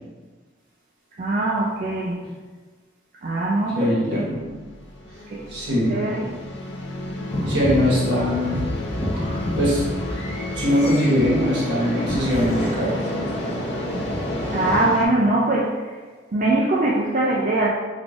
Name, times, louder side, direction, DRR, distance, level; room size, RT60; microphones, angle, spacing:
voice 1, 1.2-2.2 3.2-4.3 5.3-6.4 14.5-16.0 16.3-17.7, right 2 dB, 45° right, -5 dB, 0.4 m, -22 dB
voice 2, 3.7-4.4 5.5-5.9 7.5-8.6 9.6-9.8 10.5-13.0, equal, 70° right, -6 dB, 1.2 m, -21 dB
sound 1, 4.3-15.1, left 2 dB, 70° left, 0.5 m, -33 dB
sound 2, 7.3-14.8, equal, 35° left, 0.8 m, -28 dB
3.7 x 3.4 x 2.4 m, 1.4 s
head